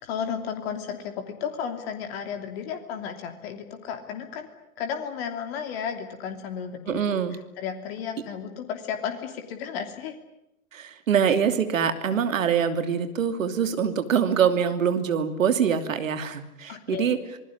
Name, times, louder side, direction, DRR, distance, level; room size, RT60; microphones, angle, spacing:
voice 1, 0.0-4.5 4.8-7.0 7.6-10.2 16.7-17.1, left 7 dB, 45° left, 6 dB, 3.0 m, -33 dB
voice 2, 6.8-7.4 10.7-17.2, right 7 dB, 65° right, 9 dB, 2.9 m, -24 dB
26.5 x 20.0 x 9.9 m, 0.90 s
figure-of-eight pair, 110°, 43 cm